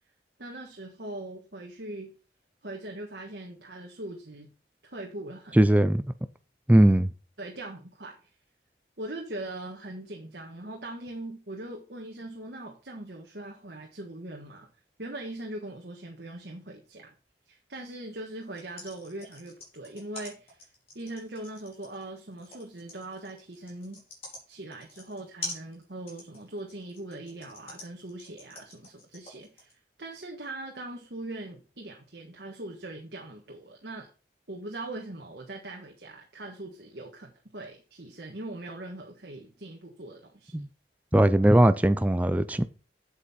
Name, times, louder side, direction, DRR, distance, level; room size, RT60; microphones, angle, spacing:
voice 1, 0.4-2.1 2.6-4.5 4.8-5.6 7.4-8.3 9.0-14.7 15.0-17.1 17.5-20.7 20.9-24.0 24.5-34.1 34.5-40.6, right 1 dB, 60° right, 1.6 m, -41 dB
voice 2, 5.5-6.0 6.7-7.1 40.5-40.7 41.1-42.7, right 1 dB, 10° right, 0.4 m, -20 dB
sound 1, 18.4-29.7, left 2 dB, 30° left, 4.2 m, -44 dB
8.3 x 7.6 x 4.3 m
head